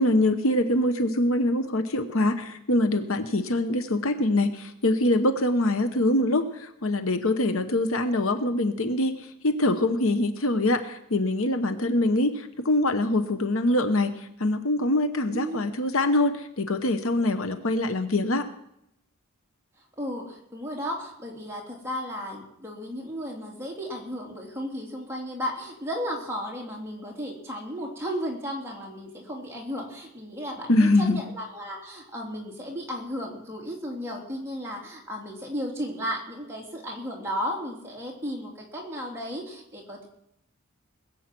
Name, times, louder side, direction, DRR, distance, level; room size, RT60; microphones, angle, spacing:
voice 1, 0.0-9.1 9.4-18.5 30.7-31.2, left 1 dB, 65° left, 8 dB, 1.0 m, -24 dB
voice 2, 15.3-15.6 15.9-16.2 20.0-40.1, equal, 10° right, -3 dB, 3.2 m, -34 dB
21.0 x 8.2 x 6.1 m, 0.79 s
head